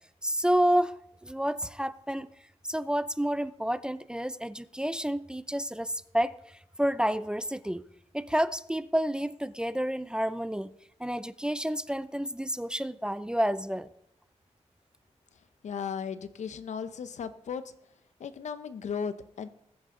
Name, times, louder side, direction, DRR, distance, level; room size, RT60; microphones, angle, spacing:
voice 1, 0.2-2.3 2.7-7.8 8.1-10.7 11.0-13.9, equal, 5° right, 0.4 m, -29 dB
voice 2, 15.6-17.6 18.2-19.5, left 6 dB, 80° left, 0.8 m, -36 dB
20.5 x 8.8 x 3.8 m
wide cardioid pair, 90°, 12 cm